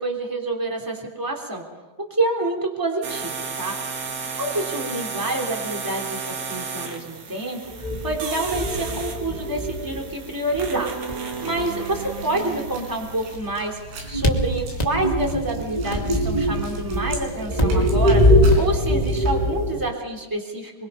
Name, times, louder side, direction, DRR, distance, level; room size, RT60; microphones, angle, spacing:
voice 1, 0.0-1.6 2.1-3.7 4.4-10.9 11.2-18.2 18.6-20.7, right 2 dB, 5° right, 2 dB, 2.3 m, -28 dB
sound 1, 3.0-13.4, right 5 dB, 50° right, 2.9 m, -33 dB
sound 2, 7.7-10.2 10.5-11.7 14.0-19.9, equal, 25° left, 0.9 m, -22 dB
sound 3, 11.3-19.3, right 1 dB, 80° right, 6.4 m, -39 dB
24.5 x 23.5 x 5.7 m, 1.2 s
omnidirectional pair, 5.0 m